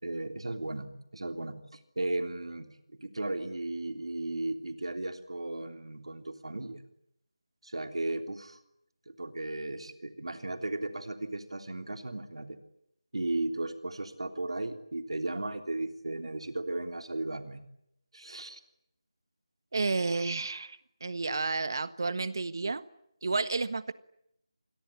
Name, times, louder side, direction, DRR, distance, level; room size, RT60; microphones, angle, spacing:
voice 1, 0.0-6.8 7.6-8.6 9.1-12.6 13.1-17.6 18.1-18.6, right 2 dB, 85° right, 3.4 m, -35 dB
voice 2, 19.7-22.8 23.2-23.9, right 3 dB, 45° right, 1.5 m, -31 dB
28.0 x 21.0 x 9.9 m
figure-of-eight pair, 175°, 3 cm